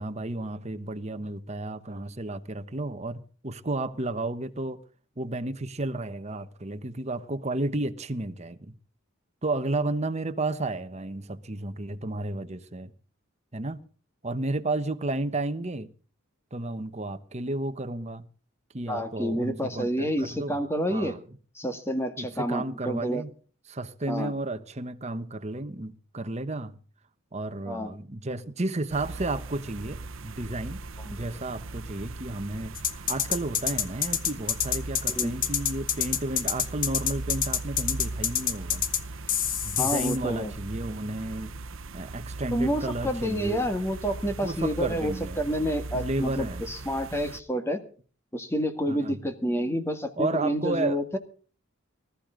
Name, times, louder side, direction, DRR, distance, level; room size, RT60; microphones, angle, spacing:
voice 1, 0.0-4.8 5.2-8.8 9.4-12.9 13.5-13.8 14.2-15.9 16.5-18.3 18.7-20.6 20.9-21.2 22.2-23.3 23.7-26.8 27.3-30.8 31.1-38.9 39.6-41.6 41.9-43.7 44.4-45.4 45.9-46.6 48.9-49.2 50.2-51.2, right 2 dB, 30° right, 1.1 m, -32 dB
voice 2, 18.9-21.1 21.6-23.2 24.1-24.3 27.7-27.9 31.0-31.2 35.1-35.3 39.8-40.5 42.5-47.8 48.3-51.2, equal, 10° left, 1.9 m, -29 dB
sound 1, 28.9-47.4, right 2 dB, 70° right, 0.9 m, -39 dB
sound 2, 32.8-39.0 39.3-40.2, left 9 dB, 40° left, 1.1 m, -26 dB
20.0 x 13.5 x 3.8 m
head